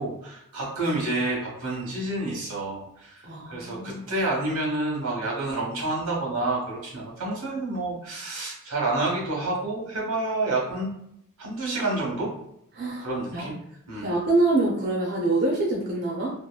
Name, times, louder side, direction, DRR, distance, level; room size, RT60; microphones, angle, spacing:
voice 1, 0.0-10.9 11.4-12.3 13.0-13.6 13.9-14.1, right 2 dB, 85° right, -2 dB, 1.1 m, -29 dB
voice 2, 3.2-4.1 12.7-13.1 13.3-13.5 14.0-16.3, right 2 dB, 45° right, -4 dB, 0.5 m, -25 dB
2.9 x 2.5 x 2.2 m, 0.75 s
head